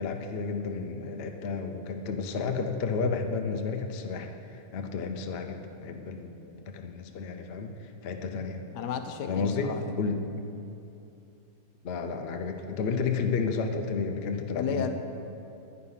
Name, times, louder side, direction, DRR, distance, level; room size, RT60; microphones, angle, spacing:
voice 1, 0.0-4.3 4.5-6.3 6.7-8.6 9.3-10.2 11.8-14.9, left 5 dB, 55° left, 5 dB, 0.7 m, -31 dB
voice 2, 8.7-9.9 14.5-14.9, left 7 dB, 75° left, 7 dB, 1.3 m, -33 dB
10.0 x 9.9 x 5.7 m, 2.8 s
omnidirectional pair, 1.9 m